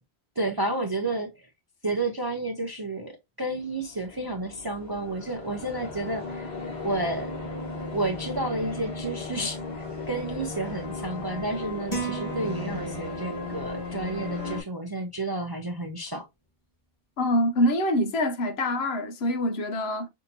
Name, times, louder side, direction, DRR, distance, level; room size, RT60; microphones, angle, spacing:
voice 1, 0.4-1.5 1.8-6.5 6.8-7.3 7.9-16.2, right 2 dB, 30° right, 0.4 m, -31 dB
sound 1, 3.7-14.6, left 3 dB, 40° left, 3.2 m, -36 dB
sound 2, 11.9-13.4, right 5 dB, 15° left, 1.9 m, -35 dB
voice 2, 17.2-20.1, left 1 dB, 70° left, 0.9 m, -25 dB
5.6 x 2.7 x 2.6 m
omnidirectional pair, 1.2 m